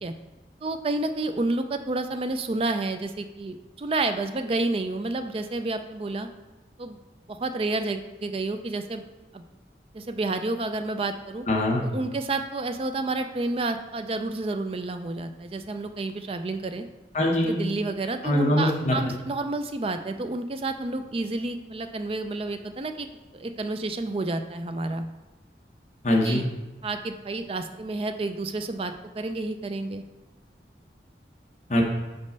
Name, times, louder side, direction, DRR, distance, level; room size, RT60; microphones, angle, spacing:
voice 1, 0.6-6.3 6.8-7.0 7.3-9.0 9.3-9.4 9.9-11.4 11.8-16.8 17.5-23.1 23.3-25.1 26.2-26.4 26.8-30.0, right 2 dB, 30° right, 8 dB, 0.3 m, -30 dB
voice 2, 11.5-11.8 17.1-17.6 18.2-19.0 26.0-26.4 31.7-31.8, left 1 dB, 40° left, 0 dB, 0.9 m, -22 dB
5.3 x 4.1 x 5.3 m, 1.1 s
head